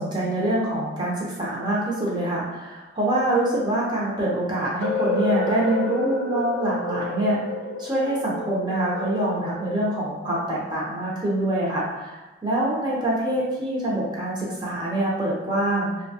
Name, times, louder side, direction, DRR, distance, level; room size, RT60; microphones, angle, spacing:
voice 1, 0.0-7.4 7.8-16.0, right 1 dB, 20° right, -6 dB, 0.6 m, -25 dB
sound 1, 4.8-10.7, left 2 dB, 75° left, 0.5 m, -30 dB
3.0 x 2.2 x 2.7 m, 1.1 s
head